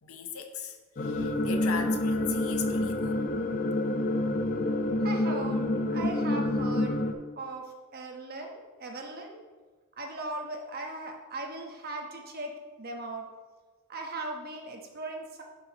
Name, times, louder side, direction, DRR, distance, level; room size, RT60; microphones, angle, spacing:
voice 1, 0.0-3.3, left 5 dB, 80° left, 5 dB, 0.9 m, -38 dB
sound 1, 1.0-7.1, left 1 dB, 40° left, 0.5 m, -28 dB
voice 2, 5.0-7.0 7.4-9.4 10.0-12.5 12.8-13.3 13.9-15.4, right 2 dB, 45° right, 1 dB, 1.1 m, -38 dB
11.5 x 5.4 x 3.0 m, 1.4 s
head